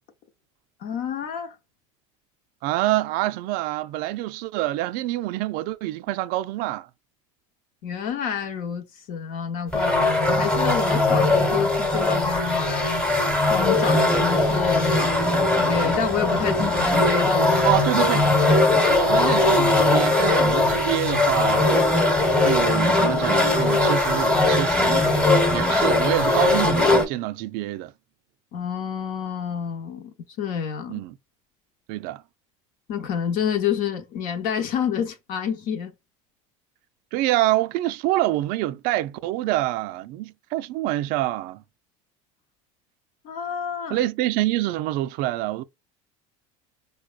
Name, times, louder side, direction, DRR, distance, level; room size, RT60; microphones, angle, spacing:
voice 1, 0.8-1.5 7.8-13.1 13.5-17.7 18.2-18.7 28.5-31.0 32.9-35.9 43.2-44.0, left 7 dB, 55° left, 0.9 m, -29 dB
voice 2, 2.6-6.9 17.6-18.3 18.9-21.7 22.4-25.1 25.5-27.9 30.9-31.2 31.9-32.2 37.1-41.6 43.9-45.6, right 16 dB, 60° right, 0.4 m, -26 dB
sound 1, 9.7-27.1, left 2 dB, 5° left, 1.1 m, -20 dB
4.6 x 2.3 x 2.3 m
supercardioid pair, 95°, 17 cm